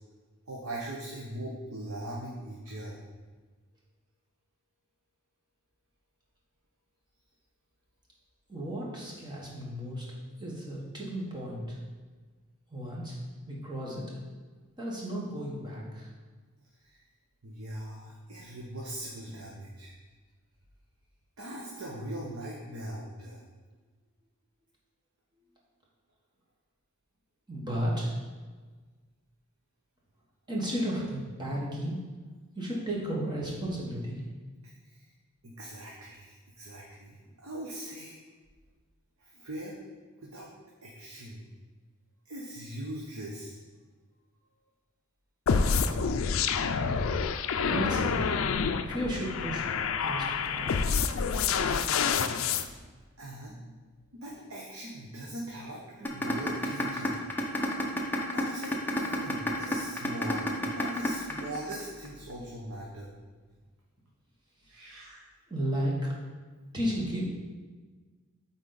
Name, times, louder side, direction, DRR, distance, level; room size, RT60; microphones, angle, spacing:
voice 1, 0.5-3.0 16.8-17.0 17.4-19.9 21.4-23.4 34.6-35.1 35.4-38.2 39.2-39.8 40.2-40.5 40.8-41.4 42.2-43.6 52.6-52.7 53.2-53.6 54.1-57.2 58.3-63.1 64.6-65.2, right 1 dB, 80° right, -4 dB, 1.0 m, -41 dB
voice 2, 8.5-11.8 12.7-13.1 13.5-14.2 14.8-16.1 27.5-28.2 30.5-32.0 32.5-34.2 47.6-48.2 48.9-49.7 50.0-51.0 64.7-65.1 65.5-66.1 66.7-67.2, equal, 20° right, -4 dB, 1.4 m, -34 dB
sound 1, 45.5-52.6, left 5 dB, 65° left, 0.4 m, -28 dB
sound 2, 56.0-62.1, left 1 dB, 10° left, 0.7 m, -30 dB
8.5 x 4.0 x 4.0 m, 1.4 s
head